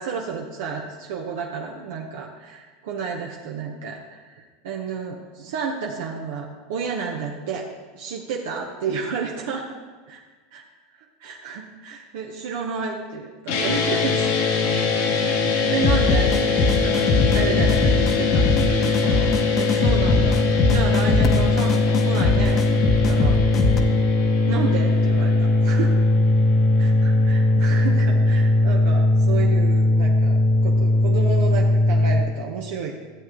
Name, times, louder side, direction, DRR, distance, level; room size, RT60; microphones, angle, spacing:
voice 1, 0.0-7.7 7.9-9.7 10.1-10.2 10.5-10.6 11.2-14.2 14.8-14.9 15.7-23.4 24.5-25.9 26.8-32.9, right 5 dB, 75° right, 0 dB, 0.9 m, -31 dB
sound 1, 13.5-32.2, left 2 dB, 75° left, 1.7 m, -20 dB
sound 2, 15.8-23.8, left 3 dB, 40° left, 1.0 m, -21 dB
12.5 x 7.7 x 3.7 m, 1.4 s
hypercardioid pair, 100°, 0 cm